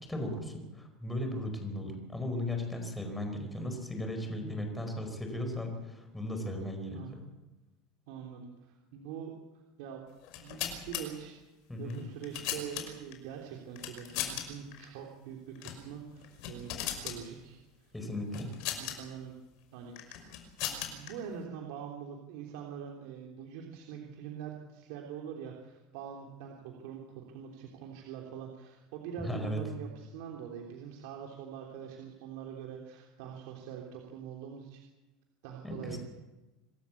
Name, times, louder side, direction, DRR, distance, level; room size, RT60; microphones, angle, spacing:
voice 1, 0.1-7.2 11.7-12.0 17.9-18.5 29.2-29.6 35.6-36.0, left 1 dB, 5° left, 4 dB, 4.9 m, -36 dB
voice 2, 8.1-9.3 9.8-10.0 10.4-11.3 11.8-17.9 18.3-19.3 19.7-20.0 20.9-34.8 35.4-36.0, right 8 dB, 70° right, 0 dB, 3.3 m, -44 dB
sound 1, 10.2-11.0 11.9-13.1 13.8-14.4 14.7-14.9 15.6-15.8 16.2-17.2 18.3-19.0 20.0-21.1, left 11 dB, 60° left, 5.6 m, -37 dB
26.5 x 13.0 x 8.5 m, 1.1 s
supercardioid pair, 140°, 0 cm